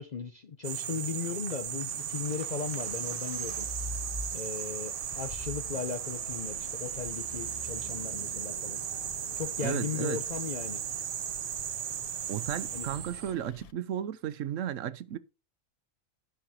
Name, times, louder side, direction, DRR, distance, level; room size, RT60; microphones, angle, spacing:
voice 1, 0.0-3.7 4.3-8.8 9.4-10.8 12.7-12.9, left 6 dB, 45° left, 0.6 m, -37 dB
sound 1, 0.6-13.3, right 9 dB, 55° right, 0.7 m, -36 dB
Traffic noise roadway noise, 1.6-13.7, left 7 dB, 80° left, 0.3 m, -51 dB
sound 2, 3.3-4.8 5.2-10.7 12.3-12.6, left 2 dB, 25° right, 1.7 m, -45 dB
voice 2, 9.6-10.2 12.3-15.2, right 10 dB, 75° right, 1.0 m, -34 dB
17.5 x 5.9 x 2.7 m
omnidirectional pair, 1.4 m